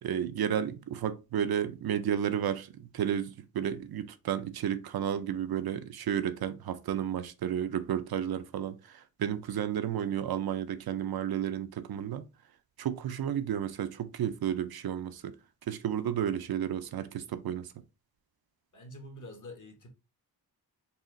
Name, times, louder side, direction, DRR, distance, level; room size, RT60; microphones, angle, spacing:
voice 1, 0.0-12.2 12.8-15.3 15.7-17.7, right 9 dB, 70° right, 0.5 m, -32 dB
voice 2, 18.7-19.9, left 1 dB, 50° left, 1.2 m, -46 dB
4.1 x 2.4 x 3.7 m
wide cardioid pair, 95°, 38 cm